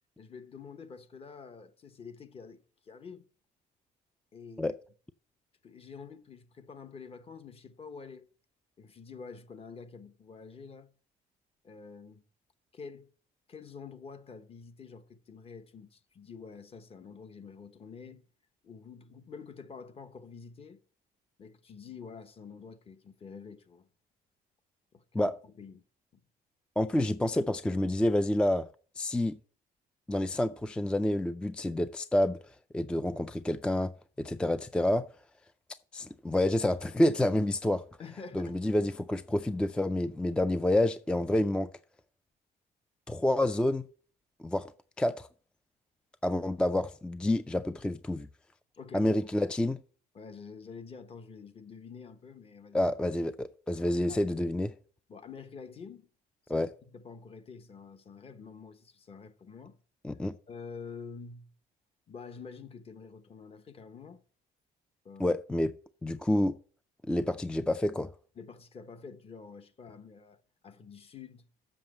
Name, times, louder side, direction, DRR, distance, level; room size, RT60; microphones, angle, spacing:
voice 1, 0.2-3.2 4.3-4.7 5.6-8.3 8.8-10.9 11.6-12.2 12.7-13.1 13.5-18.2 18.6-20.8 21.4-23.9 24.9-25.8 26.1-26.2 38.0-38.6 48.8-49.3 50.1-52.9 54.1-54.3 55.1-56.1 56.5-59.8 60.5-61.5 62.1-64.2 65.0-65.4 68.4-71.5, left 5 dB, 35° left, 1.0 m, -47 dB
voice 2, 26.8-28.7 29.0-29.4 30.1-32.4 32.7-33.9 34.2-35.1 35.9-37.8 38.3-41.7 43.1-43.9 44.4-44.7 45.0-45.3 46.2-48.3 48.9-49.8 52.7-54.7 56.5-56.7 60.0-60.4 65.2-65.7 66.0-66.5 67.1-68.1, left 1 dB, 5° left, 0.3 m, -28 dB
7.4 x 5.9 x 7.3 m
cardioid pair, 110°, 17 cm